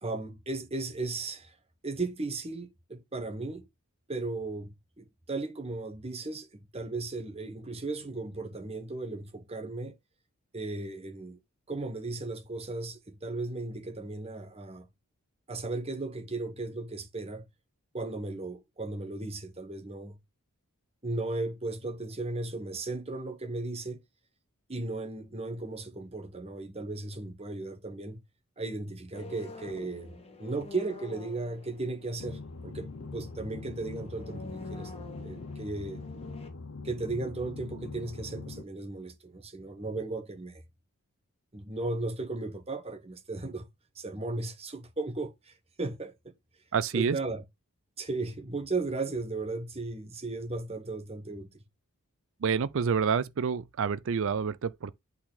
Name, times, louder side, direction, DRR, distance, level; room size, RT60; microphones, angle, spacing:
voice 1, 0.0-1.5 1.8-3.7 4.1-9.9 10.5-11.4 11.7-14.9 15.5-17.5 17.9-20.2 21.0-24.0 24.7-28.2 28.6-34.9 35.2-36.0 36.8-40.6 41.5-43.6 43.9-46.1 46.9-47.4 48.0-51.5, right 3 dB, 25° right, 1.2 m, -36 dB
sound 1, 29.1-36.5, left 2 dB, 25° left, 1.6 m, -47 dB
sound 2, 32.2-38.6, left 3 dB, 60° left, 0.7 m, -42 dB
voice 2, 46.7-47.2 52.4-55.0, right 6 dB, 60° right, 0.4 m, -28 dB
8.7 x 4.1 x 4.0 m
head